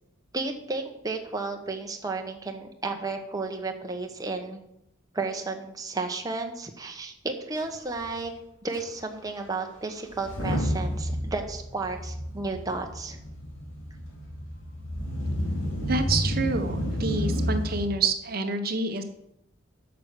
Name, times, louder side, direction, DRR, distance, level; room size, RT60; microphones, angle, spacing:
voice 1, 0.3-4.6 5.1-8.3 8.6-13.2, right 3 dB, 20° right, 3 dB, 0.9 m, -33 dB
Motor vehicle (road) / Engine starting / Accelerating revving vroom, 7.6-7.7 7.9-8.1 8.7-8.8 10.1-17.9, equal, 70° left, 3.1 m, -30 dB
voice 2, 15.9-19.0, right 3 dB, 45° right, 7 dB, 0.8 m, -28 dB
9.0 x 6.1 x 6.6 m, 0.80 s
head